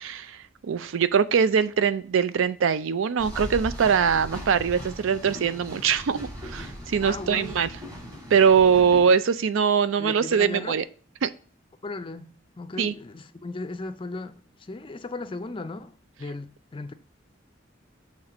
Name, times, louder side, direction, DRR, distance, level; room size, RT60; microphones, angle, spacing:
voice 1, 0.0-7.7 8.3-10.8 11.2-11.3 12.8-12.9, right 6 dB, 80° right, 0.4 m, -22 dB
sound 1, 3.2-9.1, equal, 20° right, 1.6 m, -38 dB
voice 2, 7.0-7.6 10.0-10.8 11.8-15.9 16.2-16.9, left 2 dB, 25° left, 0.4 m, -36 dB
6.6 x 3.1 x 5.9 m
head